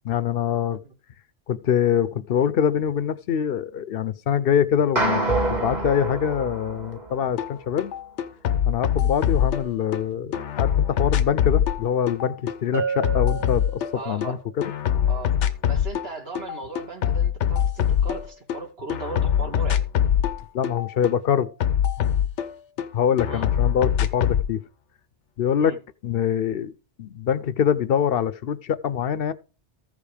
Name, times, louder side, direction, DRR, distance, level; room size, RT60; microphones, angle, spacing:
voice 1, 0.0-0.8 1.5-7.9 8.7-14.7 20.5-21.5 22.0-22.1 22.9-24.6 25.4-25.7 26.0-26.7 27.0-29.3, left 8 dB, 60° left, 0.8 m, -24 dB
sound 1, 5.0-7.4, right 2 dB, 40° right, 2.1 m, -26 dB
sound 2, 7.4-7.5 7.8-10.0 10.3-14.3 14.6-16.1 16.4-18.6 18.9-22.9 23.2-24.5, left 9 dB, 80° left, 1.1 m, -23 dB
Bell, 12.7-14.4, right 6 dB, 15° right, 0.8 m, -31 dB
voice 2, 13.9-14.4 15.1-15.4 15.7-19.8 23.2-23.5 25.6-25.8, right 3 dB, 60° right, 1.7 m, -37 dB
14.5 x 5.2 x 5.0 m
omnidirectional pair, 1.2 m